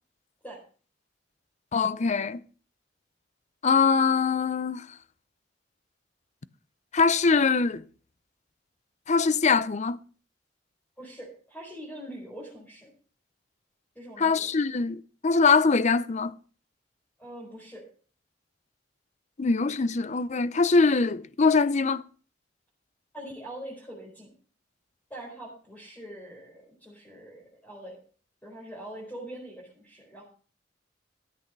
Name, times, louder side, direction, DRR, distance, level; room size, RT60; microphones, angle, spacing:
voice 1, 1.7-2.4 3.6-4.9 6.9-7.8 9.1-10.0 14.2-16.4 19.4-22.0, left 4 dB, 40° left, 0.6 m, -23 dB
voice 2, 11.0-12.9 13.9-14.5 17.2-17.8 23.1-24.3 25.1-28.0 28.4-30.2, right 1 dB, 10° left, 4.6 m, -43 dB
13.5 x 8.4 x 5.3 m
head